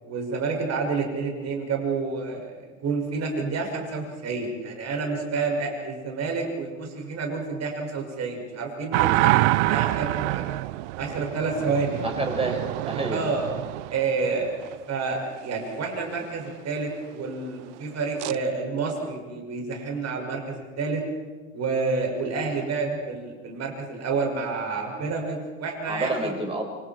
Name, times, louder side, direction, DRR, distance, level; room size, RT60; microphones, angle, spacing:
voice 1, 0.0-10.4 11.0-12.2 13.1-13.5 13.9-21.0 21.5-26.3, right 4 dB, 40° right, 2 dB, 6.4 m, -29 dB
sound 1, 8.9-14.7 18.2-18.4, right 19 dB, 60° right, 0.6 m, -26 dB
voice 2, 12.0-13.2 25.9-26.7, right 2 dB, 15° right, 1 dB, 6.7 m, -28 dB
27.5 x 26.5 x 4.6 m, 1.3 s
figure-of-eight pair, 75°, 40 cm